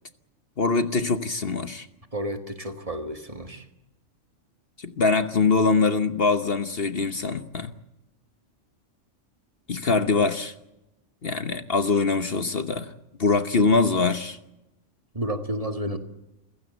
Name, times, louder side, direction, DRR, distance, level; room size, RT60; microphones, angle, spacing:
voice 1, 0.6-1.9 4.8-7.7 9.7-10.5 11.2-12.9 13.2-14.4, left 4 dB, 50° left, 1.2 m, -23 dB
voice 2, 2.1-3.6 15.1-16.0, right 1 dB, 30° right, 1.9 m, -31 dB
28.5 x 15.5 x 8.2 m
omnidirectional pair, 1.3 m